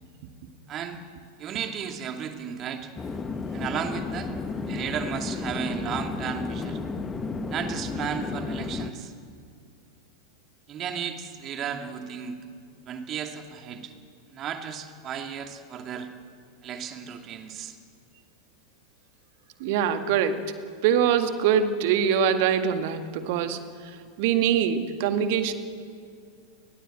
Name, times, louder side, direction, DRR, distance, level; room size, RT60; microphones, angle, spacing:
voice 1, 0.7-1.0 1.4-2.9 3.5-4.3 4.7-6.8 7.5-9.1 10.7-12.4 12.9-13.9 14.3-16.1 16.6-17.8, right 8 dB, 30° right, 5 dB, 2.5 m, -34 dB
sound 1, 3.0-8.9, left 4 dB, 15° left, 1.5 m, -32 dB
voice 2, 19.6-20.4 20.8-23.6 24.2-25.5, right 8 dB, 50° right, 8 dB, 1.9 m, -23 dB
28.5 x 21.0 x 7.9 m, 2.3 s
figure-of-eight pair, 90°, 0 cm